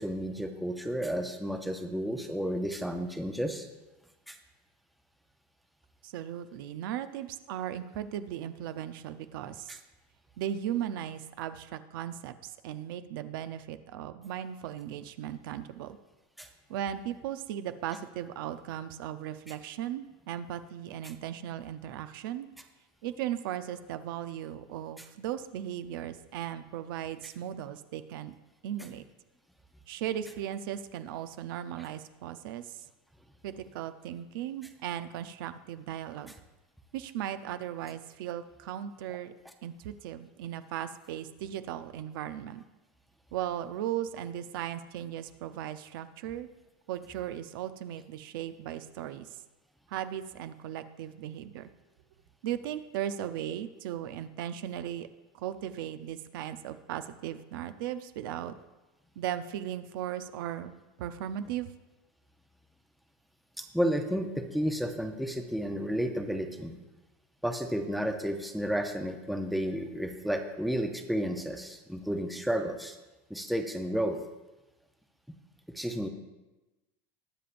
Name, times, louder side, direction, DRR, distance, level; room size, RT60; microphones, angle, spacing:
voice 1, 0.0-3.7 4.3-4.4 9.7-9.8 16.4-16.5 63.6-66.7 67.4-73.0 73.3-74.2 75.3-75.4 75.7-76.1, equal, ahead, 5 dB, 0.6 m, -32 dB
voice 2, 6.0-9.8 10.4-16.0 16.7-22.5 23.0-28.3 28.6-29.0 29.9-32.8 33.4-36.3 36.9-39.3 39.6-42.6 43.3-46.5 46.9-49.3 49.9-51.7 52.4-55.1 55.3-58.5 59.2-60.7 61.0-61.7, right 11 dB, 85° right, 11 dB, 0.6 m, -37 dB
20.5 x 7.0 x 2.5 m, 1.1 s
supercardioid pair, 165°, 11 cm